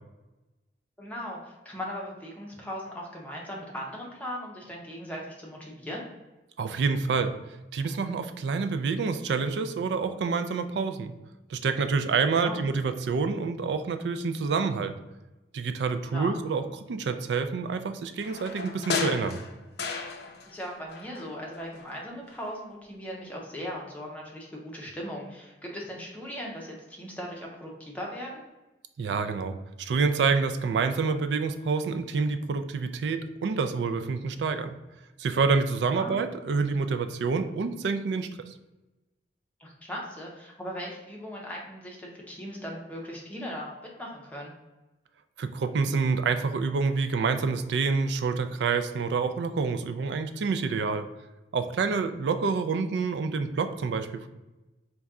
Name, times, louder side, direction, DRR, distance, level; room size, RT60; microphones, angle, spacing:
voice 1, 1.0-6.0 12.4-12.6 16.1-16.3 20.5-28.4 36.0-36.1 39.6-43.7 44.0-44.5, equal, 10° left, -3 dB, 0.7 m, -38 dB
voice 2, 6.6-7.3 7.7-11.1 11.5-14.9 15.5-19.4 29.0-34.8 35.2-38.5 45.4-51.1 51.5-54.3, right 4 dB, 80° right, 8 dB, 0.3 m, -27 dB
sound 1, 18.2-20.7 20.9-22.0 22.3-22.4, left 4 dB, 65° left, 0.5 m, -34 dB
4.1 x 2.3 x 3.6 m, 1.1 s
head